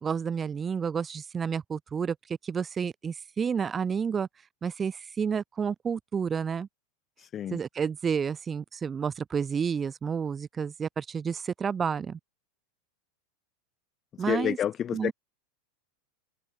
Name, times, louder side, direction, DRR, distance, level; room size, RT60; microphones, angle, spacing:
voice 1, 0.0-4.3 4.6-6.7 7.5-12.2 14.2-14.6 14.9-15.1, right 6 dB, 15° right, 1.8 m, -30 dB
voice 2, 14.3-15.1, left 10 dB, 25° left, 1.0 m, -28 dB
supercardioid pair, 160°, 0 cm